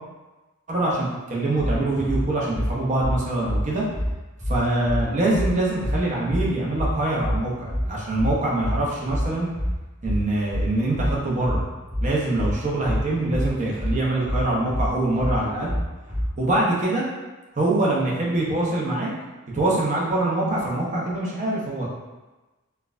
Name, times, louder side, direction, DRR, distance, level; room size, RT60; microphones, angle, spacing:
voice 1, 0.7-3.8 4.5-9.5 10.0-11.6 12.0-15.7 16.4-17.0 17.6-19.1 19.5-21.9, right 2 dB, 35° right, -5 dB, 0.7 m, -24 dB
sound 1, 1.6-16.4, equal, 20° right, 1.4 m, -26 dB
4.5 x 2.2 x 2.4 m, 1.2 s
head